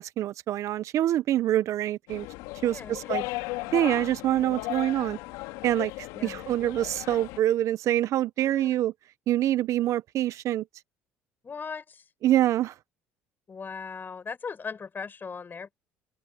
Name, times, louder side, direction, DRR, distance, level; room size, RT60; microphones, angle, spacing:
voice 1, 0.0-2.3 2.6-3.2 3.7-5.2 5.6-5.9 6.2-8.9 9.3-10.6 12.2-12.7, right 13 dB, 60° right, 1.1 m, -25 dB
sound 1, 2.1-7.4, left 22 dB, 75° left, 3.6 m, -36 dB
voice 2, 2.6-3.3 6.1-6.4 8.4-8.8 11.4-12.0 13.5-15.7, left 5 dB, 35° left, 5.4 m, -39 dB
open air
hypercardioid pair, 65°, 6 cm